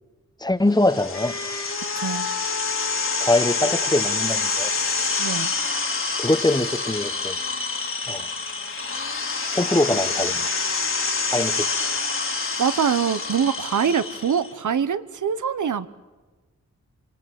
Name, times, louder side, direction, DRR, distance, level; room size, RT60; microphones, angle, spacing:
voice 1, 0.4-1.3 3.2-4.7 6.2-7.4 8.1-8.3 9.5-10.5 11.3-11.7, left 1 dB, 15° left, 13 dB, 0.9 m, -23 dB
sound 1, 0.7-14.5, left 4 dB, 45° left, 1.9 m, -27 dB
Wind instrument woodwind instrument, 1.1-5.2, left 5 dB, 70° left, 2.2 m, -35 dB
voice 2, 1.9-2.3 5.2-5.5 12.6-15.9, right 7 dB, 80° right, 14 dB, 1.0 m, -24 dB
26.5 x 26.0 x 7.7 m, 1.2 s
wide cardioid pair, 130°, 29 cm